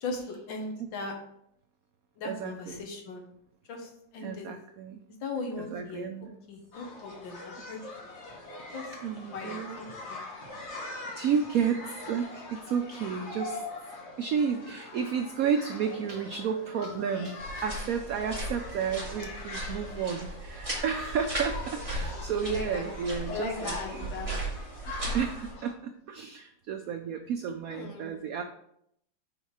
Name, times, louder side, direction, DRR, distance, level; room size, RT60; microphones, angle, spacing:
voice 1, 0.0-1.1 2.2-3.3 3.7-4.5 5.2-6.1 6.5-8.1 8.7-8.9 9.3-10.2 19.6-19.8 22.4-22.8 23.3-24.3 27.7-28.1, left 3 dB, 80° left, 3 dB, 1.9 m, -38 dB
voice 2, 2.2-2.9 4.2-5.0 5.6-6.4 9.0-9.8 11.2-13.6 14.2-24.1 25.1-28.4, right 7 dB, 85° right, 6 dB, 0.7 m, -32 dB
sound 1, 6.7-25.7, left 2 dB, 40° left, 1.3 m, -43 dB
sound 2, 17.4-25.5, right 1 dB, 15° right, 2.2 m, -37 dB
5.5 x 4.5 x 4.7 m, 0.74 s
omnidirectional pair, 2.1 m